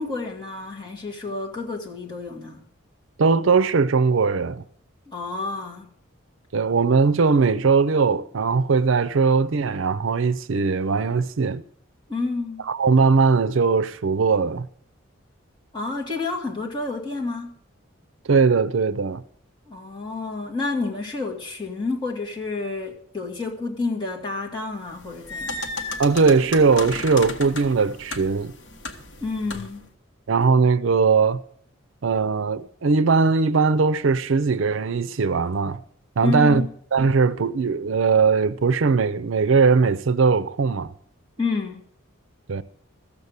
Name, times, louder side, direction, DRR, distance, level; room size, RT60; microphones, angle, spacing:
voice 1, 0.0-2.6 5.1-5.9 12.1-12.6 15.7-17.5 19.7-25.6 29.2-29.8 36.2-36.7 41.4-41.8, left 3 dB, 20° left, 2.4 m, -29 dB
voice 2, 3.2-4.6 6.5-11.6 12.6-14.7 18.3-19.2 26.0-28.5 30.3-31.4 32.0-35.8 36.2-36.6 36.9-40.9 42.5-42.6, right 4 dB, 70° right, 0.5 m, -20 dB
sound 1, 24.9-29.8, left 2 dB, 55° left, 1.4 m, -35 dB
14.5 x 7.0 x 8.0 m
head